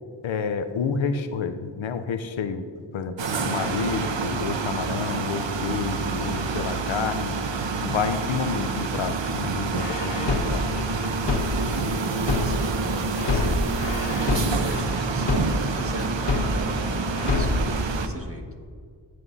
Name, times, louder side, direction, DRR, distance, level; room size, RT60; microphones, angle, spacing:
voice 1, 0.2-2.7 2.9-7.4 7.8-10.7 14.3-14.6, left 6 dB, 75° left, 9 dB, 0.7 m, -29 dB
sound 1, 3.2-18.1, right 4 dB, 65° right, 0.9 m, -28 dB
sound 2, 9.8-12.8 13.2-16.8 17.2-17.8, left 3 dB, 60° left, 1.6 m, -26 dB
voice 2, 11.4-13.7 14.6-18.5, equal, 30° right, 2 dB, 1.7 m, -37 dB
15.5 x 7.8 x 2.7 m, 2.1 s
cardioid pair, 40°, 47 cm